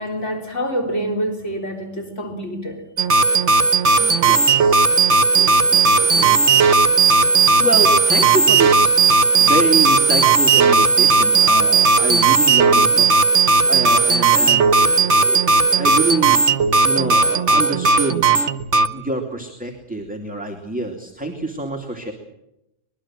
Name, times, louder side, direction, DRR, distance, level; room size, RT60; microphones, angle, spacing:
voice 1, 0.0-2.8 6.1-6.2 6.4-6.8, equal, 60° left, 2 dB, 3.9 m, -27 dB
sound 1, 3.0-18.9, right 4 dB, 60° right, 1.4 m, -15 dB
voice 2, 4.0-6.7 7.6-13.1 13.7-16.4 16.8-18.2 18.9-22.1, right 2 dB, 5° right, 2 dB, 2.6 m, -26 dB
24.5 x 21.5 x 7.5 m, 0.87 s
omnidirectional pair, 1.4 m